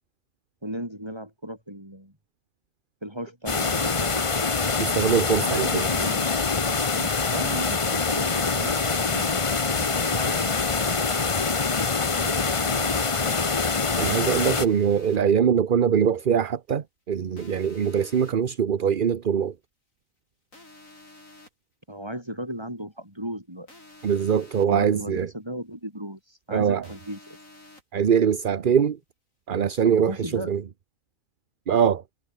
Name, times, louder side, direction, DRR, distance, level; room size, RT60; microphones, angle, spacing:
voice 1, 0.6-2.2 3.0-4.2 5.4-6.3 6.9-9.4 9.7-10.6 12.0-13.6 21.9-23.7 24.7-27.4 29.8-30.5, equal, 20° right, 8.1 m, -36 dB
sound 1, 3.5-14.7, left 4 dB, 25° left, 0.9 m, -25 dB
voice 2, 4.8-5.8 14.0-19.5 24.0-25.3 26.5-26.8 27.9-29.0 29.5-30.6 31.7-32.0, right 7 dB, 45° right, 0.9 m, -22 dB
sound 2, 14.2-15.2 17.4-18.3 20.5-21.5 23.7-24.7 26.8-27.8, left 2 dB, 80° left, 7.3 m, -49 dB
omnidirectional pair, 1.4 m